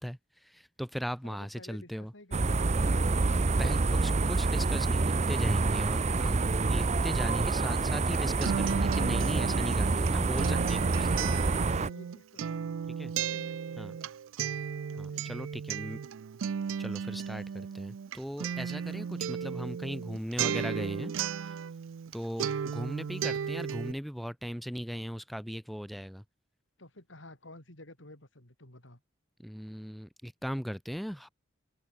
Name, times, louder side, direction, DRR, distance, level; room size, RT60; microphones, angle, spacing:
voice 1, 0.0-2.1 3.6-6.4 6.7-11.3 13.0-13.1 13.8-13.9 15.0-16.0 16.8-21.1 22.1-26.2 29.4-31.3, equal, ahead, 2.8 m, -38 dB
voice 2, 1.2-3.7 11.7-13.9 14.9-15.5 26.8-29.0, left 1 dB, 75° left, 5.4 m, -53 dB
sound 1, 2.3-11.9, right 3 dB, 35° right, 0.6 m, -27 dB
Acoustic guitar, 7.9-22.1 22.4-23.9, right 7 dB, 90° right, 0.4 m, -35 dB
open air
head